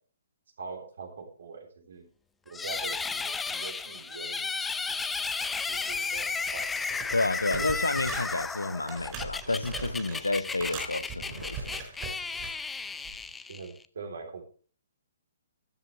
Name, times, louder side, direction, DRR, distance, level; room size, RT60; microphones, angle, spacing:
voice 1, 0.6-2.0 2.5-4.5 5.4-6.7 7.5-7.6 13.5-14.4, right 5 dB, 65° right, 3.5 m, -43 dB
sound 1, 2.5-13.9, left 4 dB, 10° left, 0.5 m, -34 dB
Rumbling etui, 6.5-6.6 6.9-8.4 8.9-10.2 10.6-12.6 13.0-13.3, right 5 dB, 25° right, 4.2 m, -40 dB
voice 2, 7.1-11.7, left 2 dB, 85° left, 0.7 m, -30 dB
14.0 x 10.5 x 3.4 m
figure-of-eight pair, 125°, 0 cm